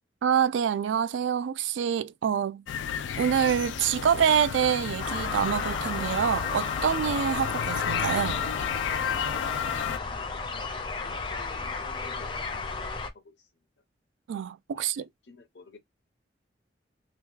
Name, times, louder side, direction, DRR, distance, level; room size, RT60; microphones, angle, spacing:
voice 1, 0.2-2.6 3.2-8.4 14.3-15.1, right 8 dB, 85° right, 0.3 m, -26 dB
sound 1, 2.7-10.0, left 8 dB, 85° left, 0.3 m, -32 dB
sound 2, 5.0-13.1, left 4 dB, 25° left, 0.5 m, -34 dB
voice 2, 9.8-10.7 11.0-13.0 13.2-13.4 14.8-15.8, left 3 dB, 70° left, 0.8 m, -52 dB
2.9 x 2.2 x 3.5 m
head